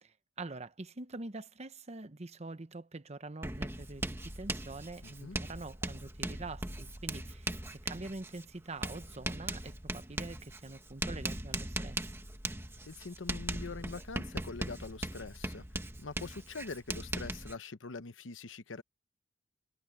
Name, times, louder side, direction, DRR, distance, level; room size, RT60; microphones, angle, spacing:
voice 1, 0.0-12.1, right 2 dB, 35° right, 1.0 m, -45 dB
Writing, 3.4-17.5, right 1 dB, 15° right, 1.5 m, -39 dB
voice 2, 5.0-5.4 12.9-18.8, left 3 dB, 85° left, 0.9 m, -44 dB
head